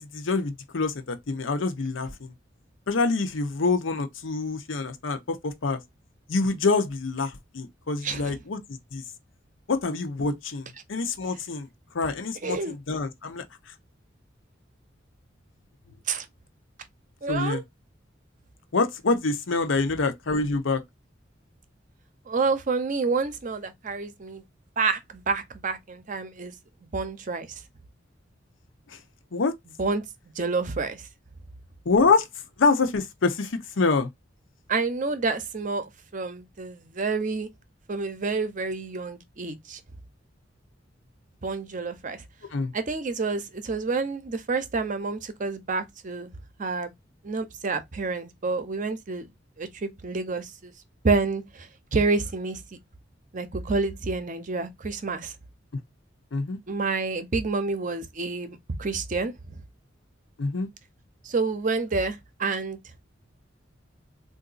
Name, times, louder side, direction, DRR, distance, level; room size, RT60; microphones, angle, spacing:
voice 1, 0.0-2.3 2.9-5.8 6.3-9.0 9.7-11.7 11.9-13.7 17.3-17.6 18.7-20.8 28.9-29.0 29.3-29.5 31.9-32.3 32.6-34.1 42.5-42.7 56.3-56.6 60.4-60.7, left 3 dB, 90° left, 0.7 m, -26 dB
voice 2, 12.4-12.8 16.1-16.3 17.2-17.6 22.3-24.4 24.8-26.5 26.9-27.5 29.8-30.0 30.4-31.0 34.7-37.5 37.9-39.8 41.4-42.2 42.7-46.3 46.6-46.9 47.2-49.3 49.6-50.7 51.0-52.6 53.3-55.3 56.7-59.3 61.2-62.8, right 4 dB, 45° right, 0.6 m, -28 dB
3.8 x 2.6 x 2.5 m
head